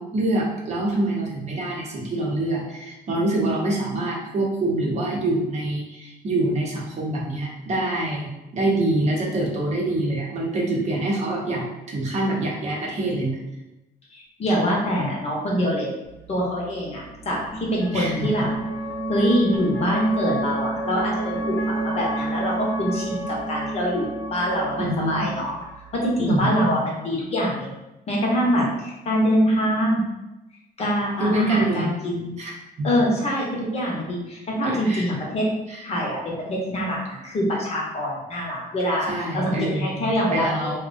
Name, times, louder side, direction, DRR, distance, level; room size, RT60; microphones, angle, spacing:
voice 1, 0.0-13.4 17.9-18.5 24.8-25.3 26.2-26.6 31.2-32.0 32.4-32.9 34.6-35.1 35.7-35.8 39.1-40.8, right 1 dB, 40° right, -3 dB, 0.7 m, -25 dB
voice 2, 14.1-15.9 16.3-18.5 19.1-25.6 25.9-27.7 28.1-30.0 30.8-32.3 32.8-35.5 35.8-39.1 39.3-40.8, equal, 40° left, -2 dB, 0.8 m, -24 dB
sound 1, 16.1-26.4, right 2 dB, 15° left, 0.4 m, -30 dB
2.5 x 2.1 x 2.4 m, 0.97 s
cardioid pair, 110°, 17 cm